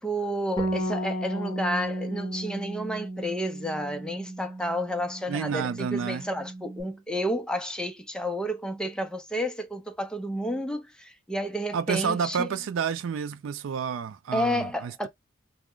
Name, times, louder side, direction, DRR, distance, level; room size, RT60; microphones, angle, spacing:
voice 1, 0.0-12.5 14.3-15.1, equal, 5° left, 0.5 m, -31 dB
Bass guitar, 0.6-6.8, right 1 dB, 25° left, 0.9 m, -34 dB
voice 2, 5.3-6.2 11.7-15.1, right 6 dB, 70° right, 0.3 m, -30 dB
3.1 x 2.1 x 3.7 m
head